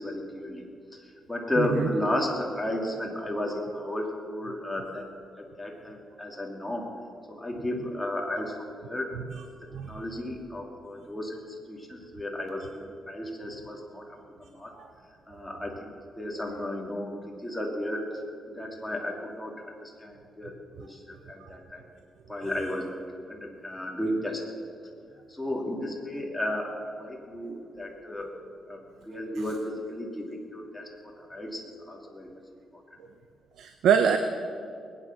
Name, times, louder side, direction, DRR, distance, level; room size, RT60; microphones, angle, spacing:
voice 1, 0.0-5.1 5.4-6.9 7.3-8.6 8.8-9.1 9.8-14.0 14.4-14.7 15.3-18.0 18.5-21.8 22.3-22.9 23.3-24.4 25.3-28.3 28.7-30.9 31.2-32.3, left 1 dB, 5° left, -1 dB, 2.8 m, -33 dB
voice 2, 1.6-1.9 9.7-10.0 14.8-14.9 21.4-21.5 33.6-34.2, right 7 dB, 85° right, 7 dB, 0.8 m, -24 dB
21.0 x 9.5 x 6.0 m, 2.3 s
cardioid pair, 110°, 0 cm